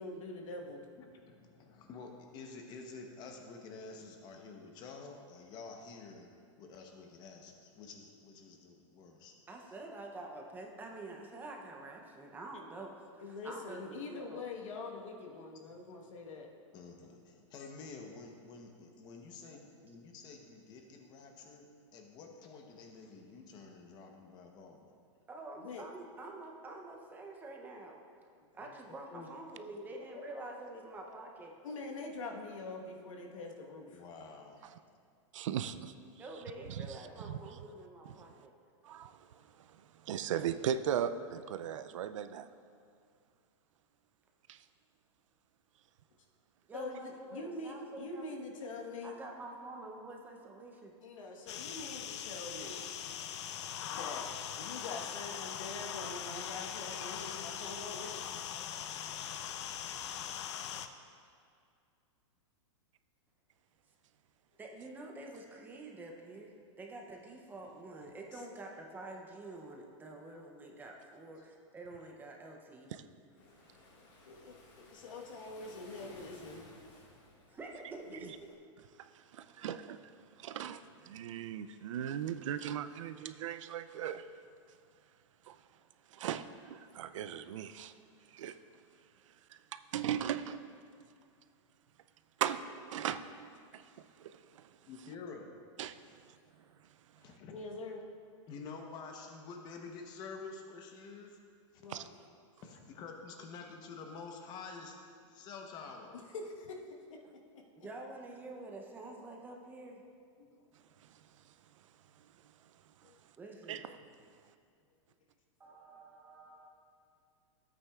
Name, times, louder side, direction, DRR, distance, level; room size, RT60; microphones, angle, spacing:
voice 1, 0.0-0.8 13.2-16.5 25.6-25.8 31.6-34.0 46.7-49.2 51.0-52.8 53.9-54.3 54.6-58.2 73.4-73.5 74.2-74.6 74.9-76.6 97.5-98.1 101.8-102.1 106.3-106.8 107.1-107.6 110.5-110.6 113.0-113.2, left 3 dB, 85° left, 1 dB, 1.3 m, -44 dB
voice 2, 1.0-6.3 6.6-9.4 16.7-24.9 28.6-28.7 29.1-29.3 30.0-30.4 30.7-30.8 31.1-31.2 33.9-34.6 94.9-95.5 97.2-97.6 98.5-101.4 101.7-101.9 102.6-105.0 105.3-106.2, left 4 dB, 25° left, 3 dB, 0.9 m, -49 dB
voice 3, 9.5-12.9 13.3-14.4 25.3-28.0 28.5-31.5 36.2-38.5 46.7-48.5 49.0-50.9 64.6-73.1 77.5-78.5 107.7-110.0 113.4-113.8 115.6-116.7, right 2 dB, 10° right, 1 dB, 0.6 m, -47 dB
voice 4, 35.3-35.9 37.2-37.4 38.8-39.4 39.7-42.5 44.5-44.6 72.9-73.0 79.0-80.0 80.4-84.3 85.5-85.6 86.1-87.9 88.3-88.6 89.7-90.6 92.4-93.9 94.2-94.7 95.8-96.0 101.9-102.1 113.7-114.0, right 9 dB, 75° right, 12 dB, 0.4 m, -38 dB
sound 1, 51.5-60.9, left 9 dB, 60° left, 0.5 m, -41 dB
Waves surf, 73.4-78.5, left 2 dB, 45° left, 1.8 m, -58 dB
12.5 x 8.6 x 2.4 m, 2.3 s
supercardioid pair, 155°, 16 cm